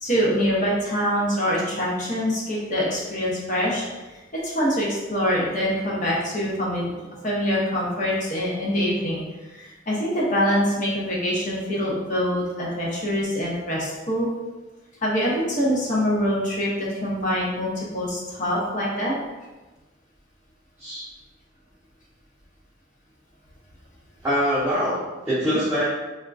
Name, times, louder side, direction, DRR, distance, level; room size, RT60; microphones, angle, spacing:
voice 1, 0.0-3.8 4.4-6.9 7.2-9.2 9.5-14.3 15.0-19.1 25.5-25.6, equal, 40° left, -5 dB, 0.8 m, -24 dB
voice 2, 24.2-25.8, equal, 10° right, -11 dB, 0.6 m, -24 dB
3.5 x 2.3 x 2.6 m, 1.2 s
head